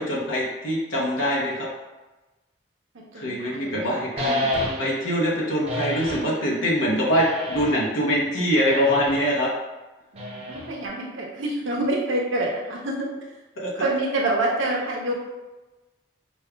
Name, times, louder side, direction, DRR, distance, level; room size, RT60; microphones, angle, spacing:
voice 1, 0.0-1.7 3.1-4.5 4.8-9.5 13.6-13.7, equal, 90° left, -5 dB, 0.8 m, -23 dB
voice 2, 2.9-4.0 10.1-13.1 13.8-15.1, right 1 dB, 85° right, -2 dB, 0.8 m, -27 dB
sound 1, 4.2-5.1 5.7-6.3 7.1-7.9 8.6-9.3 10.2-10.9, left 1 dB, 35° right, 0.6 m, -29 dB
5.3 x 2.3 x 2.2 m, 1.1 s
head